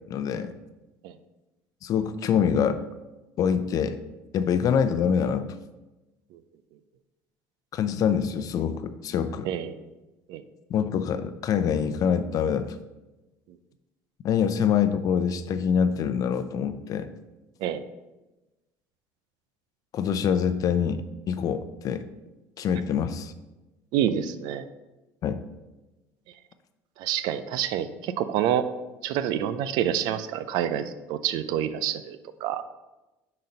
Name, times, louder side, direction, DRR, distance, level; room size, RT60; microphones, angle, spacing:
voice 1, 0.1-0.5 1.8-2.8 3.4-4.0 4.3-5.5 7.7-9.5 10.7-12.7 14.2-17.1 19.9-22.1 22.6-23.3 25.2-25.4, left 7 dB, 55° left, 11 dB, 0.6 m, -25 dB
voice 2, 9.4-9.8 10.3-10.4 17.6-17.8 23.9-24.7 27.0-28.6 29.0-32.6, right 10 dB, 70° right, 12 dB, 0.5 m, -27 dB
6.4 x 4.3 x 5.2 m, 1.1 s
supercardioid pair, 85°, 7 cm